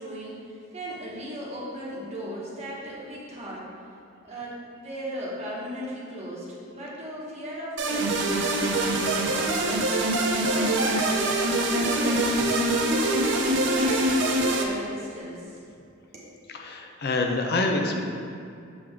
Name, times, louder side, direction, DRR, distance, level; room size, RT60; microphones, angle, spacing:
voice 1, 0.0-3.7 4.2-11.3 11.6-12.3 12.7-15.7 16.1-16.3, equal, 35° right, -6 dB, 1.4 m, -37 dB
sound 1, 7.8-14.6, right 2 dB, 65° right, 0.7 m, -24 dB
voice 2, 16.6-18.0, left 2 dB, 55° left, 3 dB, 0.6 m, -26 dB
7.0 x 5.1 x 3.5 m, 2.4 s
head